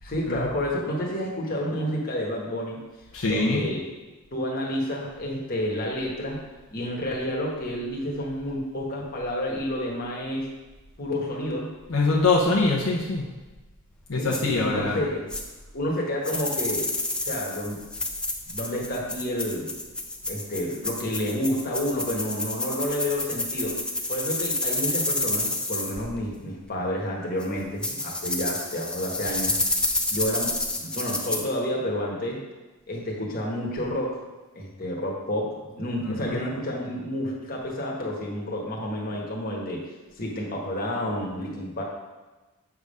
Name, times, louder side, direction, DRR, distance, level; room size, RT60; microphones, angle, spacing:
voice 1, 0.0-2.8 3.2-3.9 4.3-6.4 6.7-10.5 11.0-11.7 14.2-15.3 15.7-16.9 17.2-17.8 18.5-19.7 20.3-23.8 24.1-29.6 30.1-32.4 32.9-34.2 34.5-39.8 40.2-41.8, left 1 dB, 40° left, -3 dB, 1.4 m, -30 dB
voice 2, 3.1-3.6 11.9-13.2 14.1-15.0 36.1-36.4, left 3 dB, 65° left, -3 dB, 0.8 m, -23 dB
sound 1, 14.3-14.4 15.3-15.4 16.2-25.9 27.4-27.5 27.8-31.4, left 2 dB, 5° left, 0.4 m, -29 dB
7.8 x 3.6 x 5.4 m, 1.2 s
head